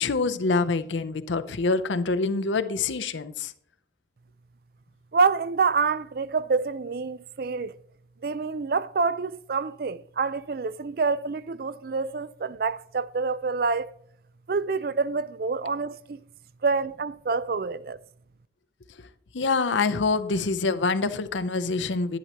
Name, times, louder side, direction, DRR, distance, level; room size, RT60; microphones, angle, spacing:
voice 1, 0.0-3.5 19.3-22.2, left 4 dB, 80° left, 0.7 m, -26 dB
voice 2, 5.1-7.8 8.2-13.9 14.5-16.2 16.6-18.0, right 4 dB, 50° right, 0.4 m, -27 dB
11.0 x 9.8 x 2.9 m
head